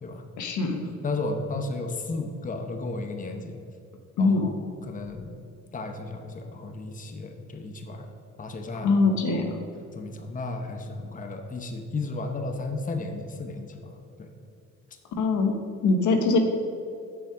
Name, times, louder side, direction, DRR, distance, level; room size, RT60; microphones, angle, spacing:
voice 1, 0.4-0.9 4.2-4.5 8.8-9.6 15.2-15.5 15.8-16.4, left 3 dB, 75° left, 5 dB, 1.0 m, -22 dB
voice 2, 1.0-3.6 4.2-4.5 4.9-5.3 5.7-8.1 8.4-8.9 9.3-9.4 9.9-13.9 14.2-14.3, left 3 dB, 25° left, 5 dB, 0.8 m, -33 dB
7.3 x 5.6 x 4.8 m, 2.5 s
cardioid pair, 90°, 30 cm